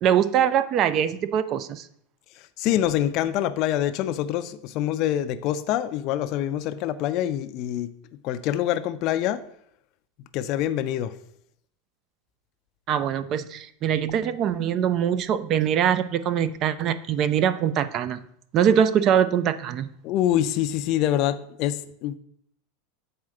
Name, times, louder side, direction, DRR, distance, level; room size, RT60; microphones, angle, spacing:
voice 1, 0.0-1.9 12.9-18.2 18.5-19.9, right 9 dB, 30° right, 14 dB, 0.4 m, -23 dB
voice 2, 2.6-7.9 8.2-9.4 10.3-11.1 20.0-22.2, left 12 dB, 40° left, 10 dB, 0.4 m, -25 dB
7.6 x 4.2 x 4.8 m, 0.68 s
supercardioid pair, 160°, 0 cm